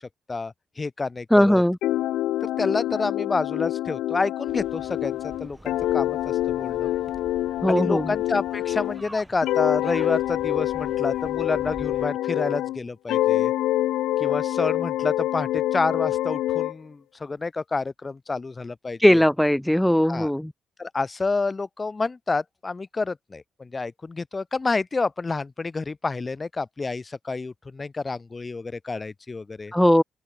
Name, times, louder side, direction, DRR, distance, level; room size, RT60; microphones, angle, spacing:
voice 1, 0.0-1.6 2.4-6.9 7.7-13.5 14.2-19.2 20.0-20.3 20.8-29.7, left 3 dB, 25° left, 0.9 m, -29 dB
voice 2, 1.3-1.8 7.6-8.1 19.0-20.5 29.7-30.0, equal, 5° left, 0.9 m, -18 dB
sound 1, 1.8-9.0 9.4-12.8 13.1-16.7, left 14 dB, 85° left, 0.6 m, -26 dB
sound 2, 4.5-12.1, right 1 dB, 10° right, 4.9 m, -47 dB
open air
cardioid pair, 90°, 0 cm